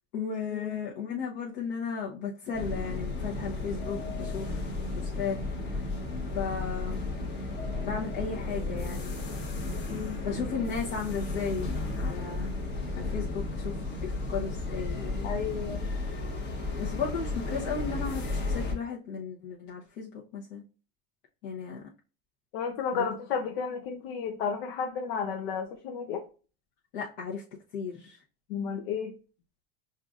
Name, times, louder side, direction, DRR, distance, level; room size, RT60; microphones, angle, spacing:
voice 1, 0.1-5.4 6.3-7.0 7.8-9.2 9.9-11.7 11.9-12.5 13.0-15.4 16.8-20.6 21.4-21.9 22.9-23.0 26.9-27.4 27.7-28.2, left 6 dB, 65° left, 1.0 m, -35 dB
sound 1, 2.5-18.7, left 3 dB, 35° left, 1.0 m, -33 dB
voice 2, 15.2-15.9 22.5-26.2 28.5-29.1, left 6 dB, 90° left, 0.7 m, -32 dB
5.5 x 2.6 x 2.4 m
supercardioid pair, 145°, 29 cm